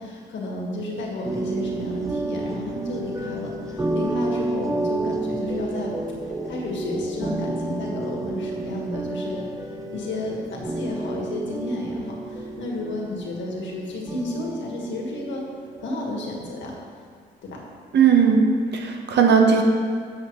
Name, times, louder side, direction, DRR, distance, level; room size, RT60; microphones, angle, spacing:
voice 1, 0.0-5.9 6.3-9.5 9.9-15.4 15.8-16.7 17.4-17.6, left 2 dB, 70° left, -2 dB, 1.7 m, -32 dB
sound 1, 1.2-16.3, right 2 dB, 15° right, 0.6 m, -30 dB
voice 2, 17.9-18.4 18.7-19.6, right 6 dB, 60° right, 2 dB, 1.1 m, -17 dB
7.6 x 7.4 x 3.2 m, 2.1 s
cardioid pair, 90°, 20 cm